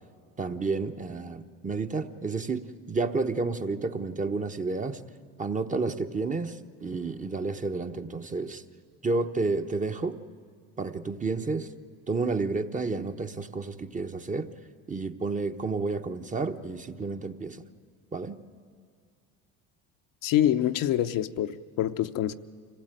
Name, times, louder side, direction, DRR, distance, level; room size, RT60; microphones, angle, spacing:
voice 1, 0.4-5.0 5.4-8.6 9.0-10.2 10.8-11.7 12.1-14.5 14.9-17.6 18.1-18.4, right 3 dB, 20° right, 1.0 m, -30 dB
voice 2, 20.2-22.3, left 11 dB, 60° left, 0.8 m, -26 dB
25.0 x 16.5 x 9.1 m
supercardioid pair, 100°, 37 cm